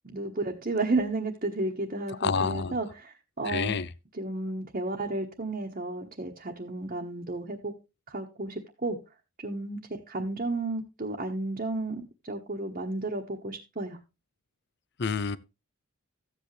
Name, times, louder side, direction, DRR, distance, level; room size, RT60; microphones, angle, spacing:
voice 1, 0.0-3.8 4.2-7.7 8.1-9.0 9.4-9.8 10.1-14.0, right 2 dB, 40° right, 1.3 m, -32 dB
voice 2, 2.2-2.8 3.4-3.9 15.0-15.4, left 5 dB, 55° left, 0.6 m, -28 dB
14.0 x 8.2 x 3.3 m
head